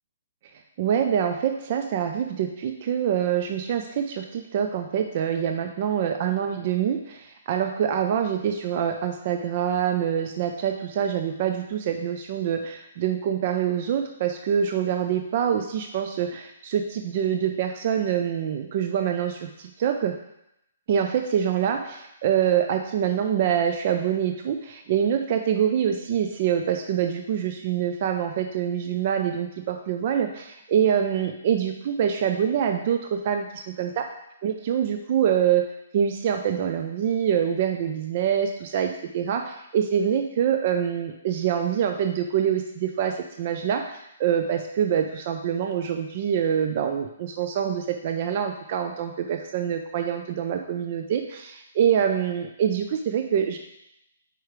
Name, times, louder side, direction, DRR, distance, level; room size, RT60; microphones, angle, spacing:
voice 1, 0.8-20.1 20.9-34.1 34.4-35.7 35.9-43.9 44.2-53.6, right 8 dB, 40° right, 5 dB, 0.4 m, -25 dB
4.8 x 4.7 x 4.7 m, 0.83 s
hypercardioid pair, 165°, 0 cm